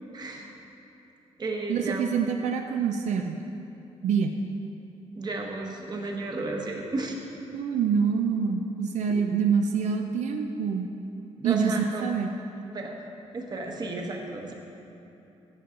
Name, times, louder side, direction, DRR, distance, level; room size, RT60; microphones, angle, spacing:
voice 1, 0.1-0.5 1.4-2.0 5.2-7.2 9.2-9.3 11.4-12.0 12.7-12.9 13.3-14.5, right 2 dB, 35° right, 1 dB, 1.1 m, -33 dB
voice 2, 1.7-3.5 4.0-4.4 7.5-10.9 11.4-11.7 12.0-12.3, right 6 dB, 80° right, 4 dB, 0.5 m, -26 dB
14.5 x 6.9 x 3.8 m, 2.9 s
wide cardioid pair, 140°, 12 cm